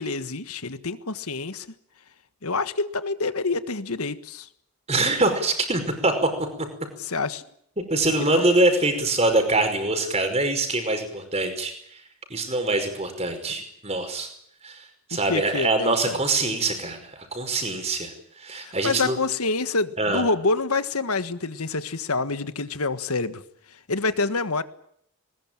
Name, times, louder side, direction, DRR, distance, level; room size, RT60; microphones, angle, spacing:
voice 1, 0.0-1.7 2.4-4.5 7.0-7.4 8.2-8.4 15.1-16.2 18.6-23.4 23.9-24.6, left 3 dB, 85° left, 12 dB, 1.6 m, -27 dB
voice 2, 4.9-6.1 6.4-6.5 7.8-12.0 12.3-14.3 14.6-19.2 20.0-20.2, right 2 dB, 30° right, 6 dB, 5.3 m, -24 dB
21.0 x 21.0 x 9.0 m, 0.69 s
head